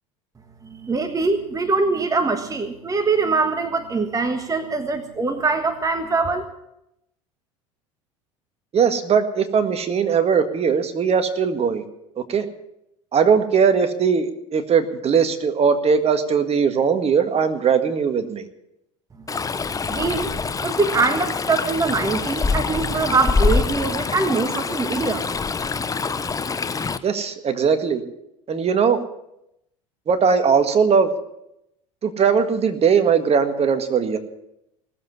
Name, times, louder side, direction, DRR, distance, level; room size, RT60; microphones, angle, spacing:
voice 1, 0.6-6.4 19.9-20.3 20.6-25.2, right 4 dB, 20° right, 8 dB, 1.5 m, -23 dB
voice 2, 8.7-11.9 12.3-12.5 13.1-18.5 27.0-28.0 28.5-29.0 30.1-31.1 32.0-34.2, right 6 dB, 40° right, 9 dB, 1.8 m, -19 dB
Stream, 19.3-27.0, left 4 dB, 20° left, 0.9 m, -25 dB
18.5 x 7.8 x 9.6 m, 0.82 s
hypercardioid pair, 80°, 17 cm